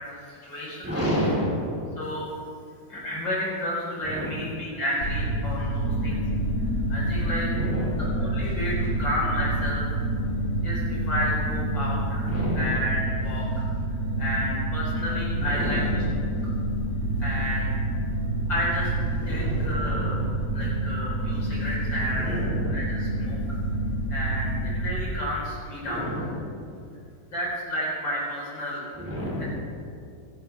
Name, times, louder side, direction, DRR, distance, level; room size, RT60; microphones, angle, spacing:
voice 1, 0.2-0.9 2.0-2.3 2.9-6.2 6.9-7.5 8.1-9.8 10.6-12.3 12.5-13.7 14.2-15.8 17.2-17.8 18.5-18.9 19.3-20.3 20.5-22.4 22.7-23.4 24.1-26.1 27.3-28.9, equal, 55° left, -6 dB, 5.3 m, -31 dB
voice 2, 0.8-1.6 4.0-4.4 7.4-8.5 12.3-12.8 15.4-16.0 19.2-20.5 22.1-22.8 25.8-26.5 28.9-29.5, equal, 5° right, -5 dB, 3.5 m, -31 dB
sound 1, 5.0-24.9, right 1 dB, 35° left, 3.4 m, -27 dB
26.0 x 11.5 x 3.6 m, 2.4 s
omnidirectional pair, 2.3 m